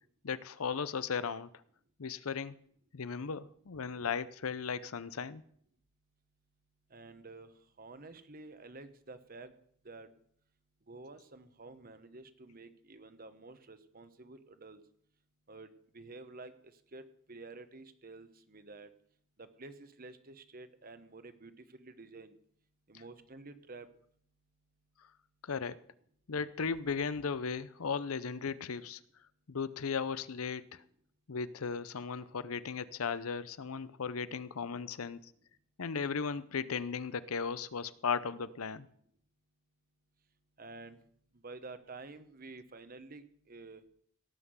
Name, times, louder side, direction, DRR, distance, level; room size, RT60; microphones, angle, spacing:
voice 1, 0.2-1.5 2.0-2.5 2.9-5.4 25.4-25.8 26.3-29.0 29.5-30.8 31.3-35.2 35.8-38.9, left 5 dB, 90° left, 16 dB, 0.6 m, -36 dB
voice 2, 6.9-9.5 9.8-10.1 10.9-14.8 15.5-16.5 16.9-18.9 19.4-22.3 22.9-23.9 40.6-41.0 41.4-43.8, right 3 dB, 40° right, 11 dB, 1.1 m, -50 dB
17.5 x 5.9 x 8.0 m, 0.64 s
head